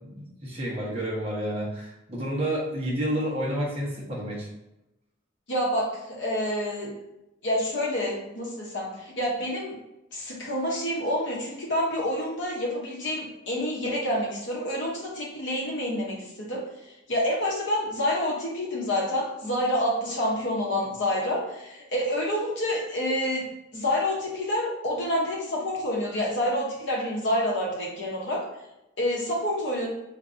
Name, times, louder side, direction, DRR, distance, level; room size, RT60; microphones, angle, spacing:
voice 1, 0.0-4.5, right 1 dB, 30° right, -6 dB, 1.0 m, -30 dB
voice 2, 5.5-6.9 7.4-9.7 10.1-16.6 17.1-23.4 23.7-28.4 29.0-29.9, left 1 dB, 55° left, -3 dB, 0.8 m, -28 dB
3.6 x 2.6 x 2.6 m, 0.91 s
head